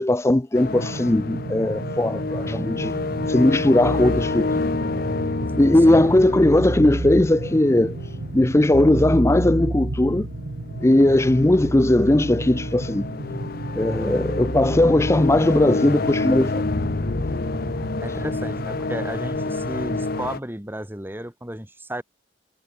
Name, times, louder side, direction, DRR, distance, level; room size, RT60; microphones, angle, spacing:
voice 1, 0.0-2.9 3.3-4.9 5.6-8.0 8.3-10.3 10.8-13.0 13.7-16.6, left 1 dB, 15° left, 0.5 m, -18 dB
sound 1, 0.5-20.4, left 3 dB, 50° left, 0.7 m, -29 dB
sound 2, 0.7-20.3, right 2 dB, 65° right, 0.9 m, -34 dB
Keyboard (musical), 3.8-4.5 5.9-7.5 8.7-15.8, right 1 dB, 85° right, 2.0 m, -31 dB
voice 2, 13.9-14.2 18.0-22.0, right 1 dB, 10° right, 2.3 m, -33 dB
head